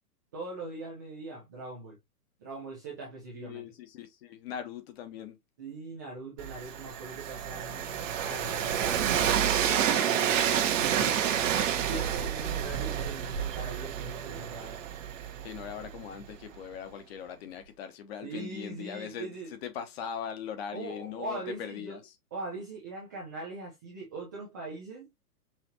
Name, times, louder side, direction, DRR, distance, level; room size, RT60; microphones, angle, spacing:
voice 1, 0.3-2.0 2.4-3.6 5.6-11.2 11.8-14.8 18.2-19.5 20.7-22.0 22.3-25.1, right 3 dB, 15° right, 0.4 m, -41 dB
voice 2, 3.3-5.4 15.4-22.1, left 8 dB, 40° left, 1.0 m, -40 dB
Train, 6.4-16.2, right 9 dB, 50° right, 1.1 m, -29 dB
5.8 x 2.5 x 2.7 m
hypercardioid pair, 135°, 48 cm